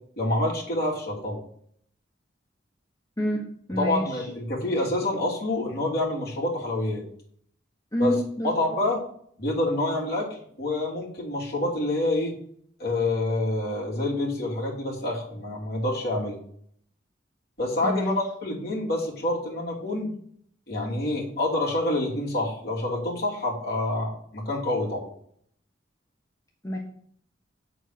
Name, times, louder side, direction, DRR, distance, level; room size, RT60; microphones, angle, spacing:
voice 1, 0.2-1.4 3.8-7.0 8.0-8.1 8.4-9.0 9.4-10.3 10.6-12.3 12.8-16.3 17.6-20.1 20.7-25.0, left 1 dB, 55° left, -3 dB, 2.7 m, -27 dB
voice 2, 3.2-4.3 7.9-8.5 17.8-18.1 26.6-26.8, left 1 dB, 15° left, -1 dB, 0.9 m, -28 dB
8.0 x 4.1 x 6.4 m, 0.63 s
head